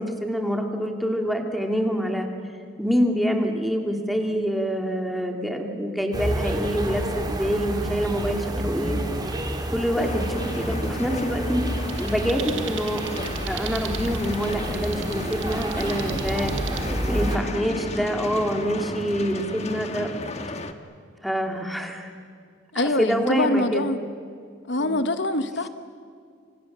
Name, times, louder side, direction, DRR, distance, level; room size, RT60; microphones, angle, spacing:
voice 1, 0.0-2.3 2.8-9.1 9.7-13.0 13.5-16.8 17.1-20.1 21.2-22.1 22.7-23.9 24.8-25.0, equal, ahead, 3 dB, 2.5 m, -26 dB
sound 1, 6.1-17.4, right 1 dB, 20° right, 2.6 m, -29 dB
sound 2, 10.0-20.7, left 2 dB, 35° left, 1.4 m, -35 dB
sound 3, 11.9-16.9, right 10 dB, 80° right, 1.5 m, -39 dB
voice 2, 22.7-24.0 24.7-25.7, left 2 dB, 65° left, 10 dB, 1.0 m, -24 dB
30.0 x 25.5 x 7.4 m, 2.2 s
head